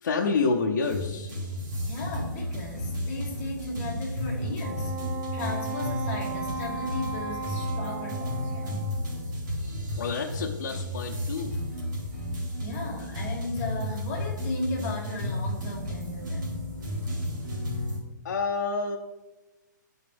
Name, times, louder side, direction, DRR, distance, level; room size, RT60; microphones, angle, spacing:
voice 1, 0.0-1.3 10.0-11.6 18.2-19.0, left 4 dB, 60° left, 0 dB, 0.7 m, -28 dB
sound 1, 0.8-18.0, left 1 dB, 70° right, 1.9 m, -33 dB
voice 2, 1.5-5.0 5.3-8.9 12.6-16.6, left 2 dB, 20° left, -3 dB, 1.1 m, -36 dB
Wind instrument woodwind instrument, 4.6-9.2, right 4 dB, 15° right, 0.7 m, -36 dB
10.0 x 4.4 x 3.4 m, 1.1 s
hypercardioid pair, 175°, 10 cm